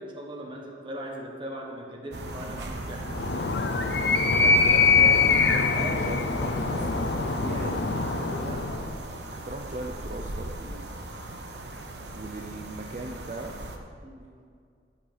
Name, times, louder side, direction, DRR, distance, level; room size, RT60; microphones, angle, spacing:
voice 1, 0.0-3.5 4.3-4.8 5.6-6.1 6.6-7.2 14.0-14.3, right 1 dB, 30° right, 0 dB, 1.4 m, -39 dB
sound 1, 2.1-13.8, right 1 dB, 70° right, 1.0 m, -38 dB
Animal, 3.1-8.9, left 4 dB, 75° left, 0.7 m, -23 dB
voice 2, 4.3-10.9 12.1-13.5, right 2 dB, 45° right, 1 dB, 0.6 m, -39 dB
12.5 x 6.0 x 5.1 m, 2.2 s
head